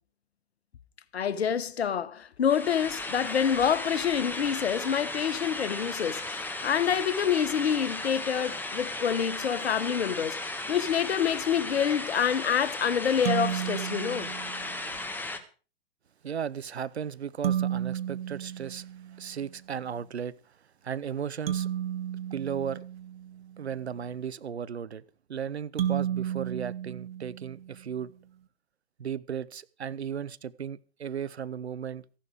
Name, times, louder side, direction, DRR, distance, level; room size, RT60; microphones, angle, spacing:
voice 1, 1.1-14.3, left 8 dB, 80° left, 1.1 m, -27 dB
sound 1, 2.5-15.4, left 2 dB, 5° left, 1.5 m, -36 dB
sound 2, 13.2-14.9 17.4-19.5 21.5-23.6 25.8-27.8, right 10 dB, 65° right, 2.0 m, -33 dB
voice 2, 16.2-21.7 22.3-22.8 23.6-25.0 25.3-28.1 29.0-32.2, right 8 dB, 85° right, 0.9 m, -36 dB
15.0 x 11.5 x 5.0 m
hypercardioid pair, 110°, 32 cm